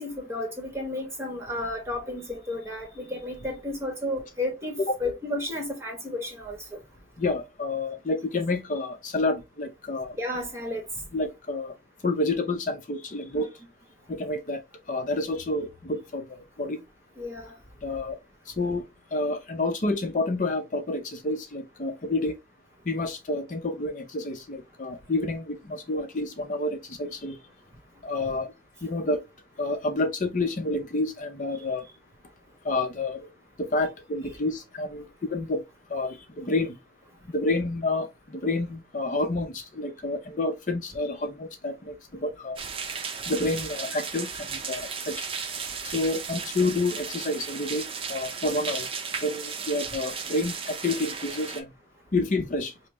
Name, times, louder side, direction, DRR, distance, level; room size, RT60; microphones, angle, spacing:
voice 1, 0.0-6.8 10.1-10.9 13.3-13.5 17.2-17.6, left 1 dB, 15° right, 1.1 m, -33 dB
voice 2, 7.2-10.2 11.1-11.7 12.0-13.5 14.1-14.6 14.9-16.3 16.6-16.8 17.8-18.2 18.5-18.8 19.1-22.4 22.8-27.4 28.0-28.5 28.8-29.2 29.6-31.9 32.6-33.3 33.6-35.6 35.9-36.8 37.3-42.0 42.2-42.6 43.3-45.2 45.8-47.8 48.1-48.9 49.2-51.7 52.1-52.7, left 2 dB, 45° left, 0.6 m, -29 dB
sound 1, 42.6-51.6, right 5 dB, 30° right, 0.5 m, -35 dB
5.4 x 2.0 x 3.0 m
head